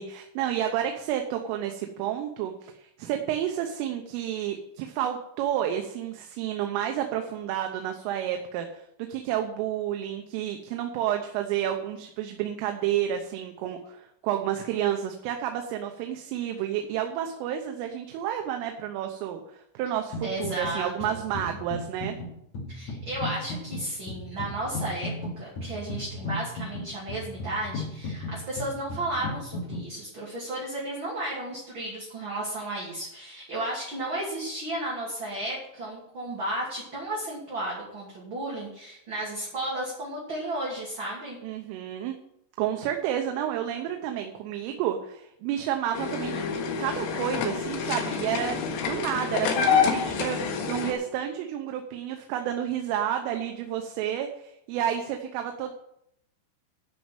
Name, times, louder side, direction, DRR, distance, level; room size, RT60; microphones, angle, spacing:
voice 1, 0.0-2.7 3.0-8.8 9.1-19.4 19.8-22.2 41.4-42.2 42.6-46.4 46.8-55.7, right 10 dB, 90° right, 4 dB, 3.5 m, -30 dB
sound 1, 20.1-20.8 21.0-29.9, left 2 dB, 45° left, 2.8 m, -35 dB
voice 2, 20.2-20.9 22.7-41.4, right 1 dB, 30° right, -5 dB, 2.5 m, -33 dB
sound 2, 45.9-50.9, left 6 dB, 80° left, 4.0 m, -27 dB
13.0 x 5.4 x 8.9 m, 0.77 s
omnidirectional pair, 5.6 m